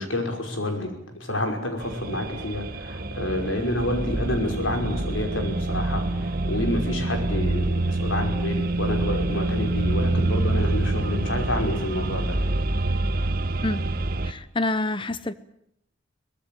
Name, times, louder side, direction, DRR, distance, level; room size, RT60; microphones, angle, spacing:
voice 1, 0.0-12.4, left 1 dB, 85° left, 5.4 m, -29 dB
sound 1, 1.8-14.3, right 2 dB, 50° right, 1.2 m, -26 dB
voice 2, 14.2-15.3, left 2 dB, 25° left, 0.8 m, -27 dB
23.5 x 18.5 x 9.3 m
head